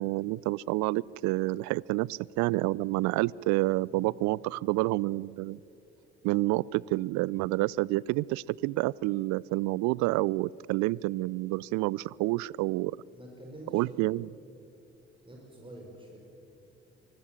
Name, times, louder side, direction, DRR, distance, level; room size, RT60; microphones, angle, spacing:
voice 1, 0.0-5.6 6.2-12.9 13.7-14.3, right 20 dB, 55° right, 25 dB, 0.5 m, -28 dB
voice 2, 13.1-14.1 15.2-16.2, right 1 dB, 15° right, -1 dB, 5.8 m, -47 dB
25.5 x 20.5 x 7.4 m, 2.7 s
figure-of-eight pair, 45°, 34 cm